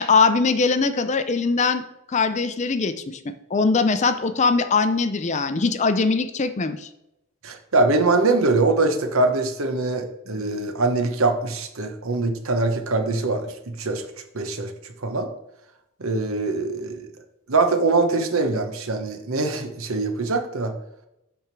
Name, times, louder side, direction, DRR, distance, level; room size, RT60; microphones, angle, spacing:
voice 1, 0.0-3.2 3.5-6.9, left 4 dB, 30° left, 10 dB, 0.5 m, -21 dB
voice 2, 7.4-14.0 14.3-14.7 15.0-15.3 16.0-17.1 17.5-20.7, right 3 dB, 70° right, 6 dB, 1.0 m, -23 dB
8.6 x 3.5 x 6.0 m, 0.87 s
head